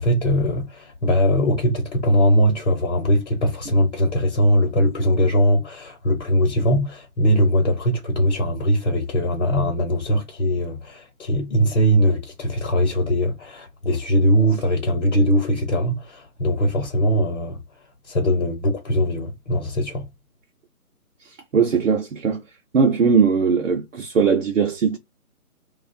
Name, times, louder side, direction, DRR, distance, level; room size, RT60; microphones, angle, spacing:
voice 1, 0.0-17.6 18.1-20.1, equal, 50° left, 0.9 m, -20 dB
voice 2, 21.2-22.4 22.7-25.0, right 5 dB, 55° right, 0.6 m, -19 dB
2.7 x 2.3 x 2.5 m
figure-of-eight pair, 160°, 45 cm